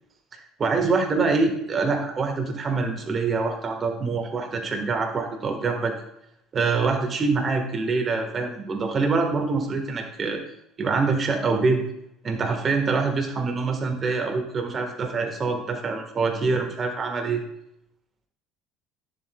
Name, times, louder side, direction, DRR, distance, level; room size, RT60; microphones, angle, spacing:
voice 1, 0.6-5.9 6.5-10.4 10.8-11.8 12.2-17.4, right 4 dB, 40° right, 4 dB, 1.3 m, -25 dB
9.9 x 7.5 x 2.2 m, 0.78 s
hypercardioid pair, 70°, 0 cm